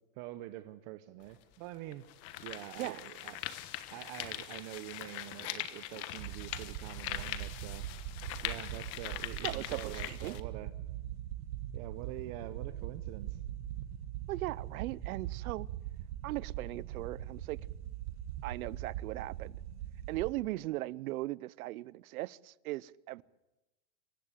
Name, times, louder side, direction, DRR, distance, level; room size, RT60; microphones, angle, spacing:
voice 1, 0.1-2.0 2.4-3.4 3.9-7.9 8.4-10.7 11.7-13.4, right 15 dB, 35° right, 12 dB, 0.7 m, -45 dB
sound 1, 1.2-1.3 1.9-10.4, left 14 dB, 30° left, 1.3 m, -42 dB
sound 2, 6.2-20.3, right 12 dB, 55° right, 1.4 m, -41 dB
voice 2, 9.4-10.4 14.3-15.7 16.2-17.6 18.4-19.6 20.1-23.2, right 18 dB, 80° right, 23 dB, 0.7 m, -38 dB
26.5 x 15.5 x 8.3 m, 0.99 s
supercardioid pair, 170°, 43 cm